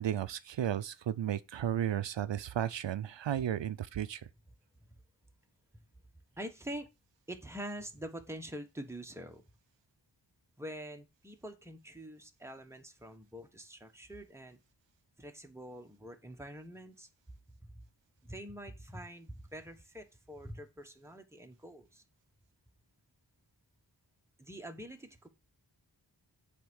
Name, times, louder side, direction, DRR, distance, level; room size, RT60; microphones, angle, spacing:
voice 1, 0.0-4.2, right 10 dB, 80° right, 0.6 m, -34 dB
voice 2, 6.4-6.9 7.3-9.4 10.6-14.6 15.2-17.1 17.6-17.8 18.2-22.0 24.4-25.3, equal, 5° right, 1.3 m, -45 dB
8.2 x 3.7 x 6.2 m
wide cardioid pair, 80°, 43 cm